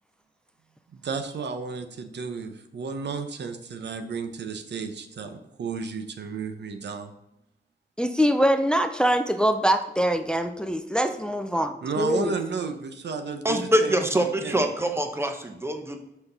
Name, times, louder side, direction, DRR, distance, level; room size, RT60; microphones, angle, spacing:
voice 1, 0.9-7.1 11.8-14.6, right 4 dB, 90° right, 7 dB, 0.8 m, -33 dB
voice 2, 8.0-12.3, equal, 5° left, 7 dB, 0.4 m, -23 dB
voice 3, 13.4-16.0, right 1 dB, 15° right, 5 dB, 0.8 m, -24 dB
6.0 x 5.9 x 3.9 m, 0.88 s
wide cardioid pair, 130°, 18 cm